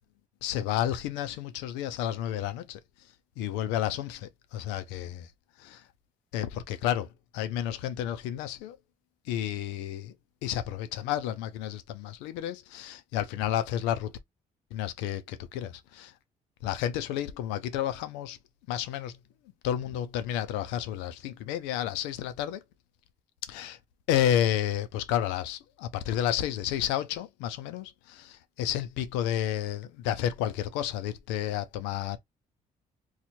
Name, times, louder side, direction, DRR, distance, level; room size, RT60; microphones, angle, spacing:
voice 1, 0.4-2.8 3.4-5.3 5.6-5.8 6.3-8.8 9.3-10.1 10.4-14.1 14.7-16.1 16.6-18.4 18.7-19.2 19.6-22.6 23.5-23.8 24.1-32.2, left 11 dB, 90° left, 0.5 m, -31 dB
2.8 x 2.4 x 4.1 m
supercardioid pair, 65°, 18 cm